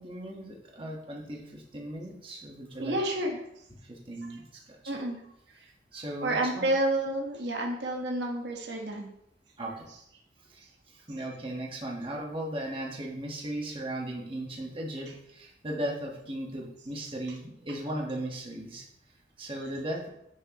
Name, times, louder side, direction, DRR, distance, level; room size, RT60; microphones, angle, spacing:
voice 1, 0.0-3.0 3.8-5.0 5.9-6.7 9.6-9.9 10.5-18.9 19.4-20.1, right 1 dB, 30° right, -1 dB, 1.4 m, -37 dB
voice 2, 2.8-3.4 4.9-5.2 6.2-9.1, right 1 dB, 75° right, 0 dB, 1.4 m, -29 dB
9.2 x 6.2 x 3.0 m, 0.78 s
head